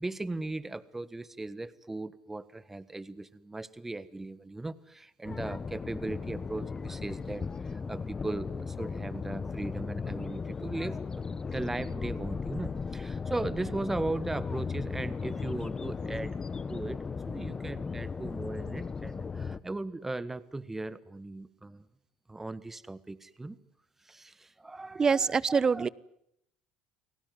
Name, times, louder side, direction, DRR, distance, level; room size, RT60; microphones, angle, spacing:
voice 1, 0.0-16.4 16.7-21.9 22.3-23.6 24.0-25.9, right 2 dB, 10° right, 16 dB, 1.6 m, -38 dB
sound 1, 5.3-19.6, left 5 dB, 25° left, 1.2 m, -36 dB
voice 2, 25.0-25.9, right 5 dB, 25° right, 22 dB, 1.0 m, -25 dB
30.0 x 19.0 x 9.4 m, 0.73 s
supercardioid pair, 90°, 2 cm